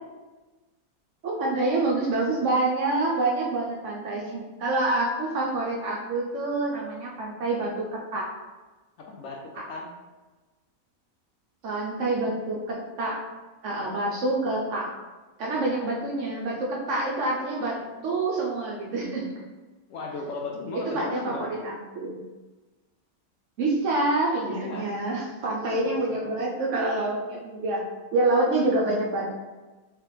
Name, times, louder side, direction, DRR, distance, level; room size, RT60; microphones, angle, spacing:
voice 1, 1.2-8.3 9.6-9.7 11.6-13.2 13.6-14.9 15.4-19.3 20.9-22.2 23.6-27.8 28.1-29.3, right 2 dB, 65° right, -2 dB, 0.9 m, -27 dB
voice 2, 9.0-9.9 13.8-13.9 15.7-15.9 17.7-17.8 19.9-21.5 24.5-25.0 25.6-26.0, left 2 dB, 70° left, 1 dB, 0.8 m, -37 dB
3.2 x 3.2 x 3.2 m, 1.2 s
omnidirectional pair, 1.6 m